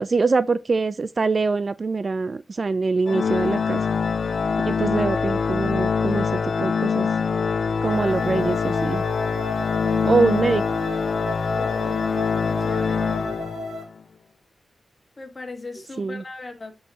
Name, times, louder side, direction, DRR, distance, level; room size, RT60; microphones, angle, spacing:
voice 1, 0.0-3.8 4.7-7.1 7.8-9.0 10.0-10.6 16.0-16.2, right 4 dB, 40° right, 0.4 m, -23 dB
Organ, 3.1-13.9, left 5 dB, 60° left, 0.6 m, -24 dB
sound 1, 7.8-13.8, left 2 dB, 70° right, 2.5 m, -35 dB
voice 2, 9.9-10.3 11.5-12.1 12.4-13.1 15.2-16.8, left 3 dB, 30° left, 1.8 m, -38 dB
8.4 x 4.9 x 2.9 m
wide cardioid pair, 105°, 0 cm